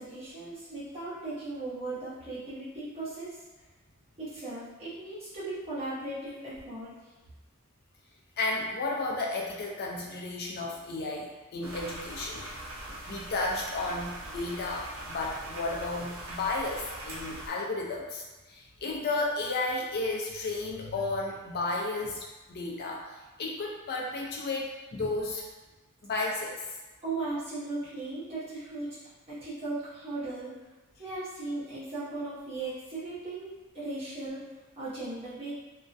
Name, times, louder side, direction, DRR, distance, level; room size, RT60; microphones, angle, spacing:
voice 1, 0.0-3.4 4.2-7.1 27.0-28.9 29.3-30.6 31.0-34.5 34.8-35.5, right 2 dB, 30° right, -12 dB, 0.8 m, -37 dB
voice 2, 8.4-12.5 12.9-22.2 22.5-25.5 26.0-26.7, left 2 dB, 45° left, -2 dB, 0.5 m, -33 dB
sound 1, 11.6-17.5, right 1 dB, 70° right, 0.6 m, -42 dB
2.3 x 2.1 x 2.5 m, 1.2 s
head